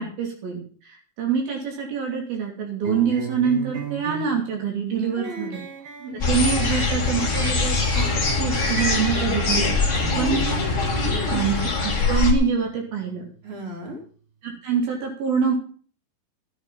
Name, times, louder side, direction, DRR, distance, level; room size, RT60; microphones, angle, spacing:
voice 1, 0.0-5.6 6.3-8.1 8.4-9.6 10.2-10.5 11.3-13.3 14.4-15.5, right 6 dB, 75° right, 0 dB, 4.8 m, -25 dB
sound 1, 2.8-14.0, right 6 dB, 55° right, 5.4 m, -38 dB
voice 2, 5.1-5.5 6.0-6.3 9.5-10.5 11.0-11.4 13.4-14.0, right 1 dB, 35° right, 0 dB, 4.2 m, -35 dB
sound 2, 6.2-12.3, left 3 dB, 25° left, 2.0 m, -23 dB
13.5 x 9.0 x 5.7 m, 0.43 s
omnidirectional pair, 4.4 m